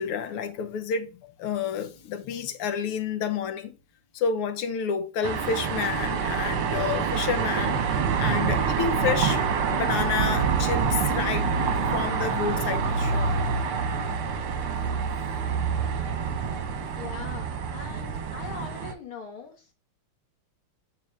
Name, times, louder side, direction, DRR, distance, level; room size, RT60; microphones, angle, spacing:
voice 1, 0.0-3.7 4.1-7.8 8.2-9.4 9.7-13.3, left 7 dB, 85° left, 1.8 m, -30 dB
sound 1, 1.7-2.4 8.5-12.0, right 1 dB, 55° right, 3.2 m, -40 dB
sound 2, 5.2-18.9, right 6 dB, 80° right, 2.0 m, -26 dB
voice 2, 17.0-19.7, left 5 dB, 70° left, 2.5 m, -41 dB
8.4 x 5.4 x 3.3 m
omnidirectional pair, 2.4 m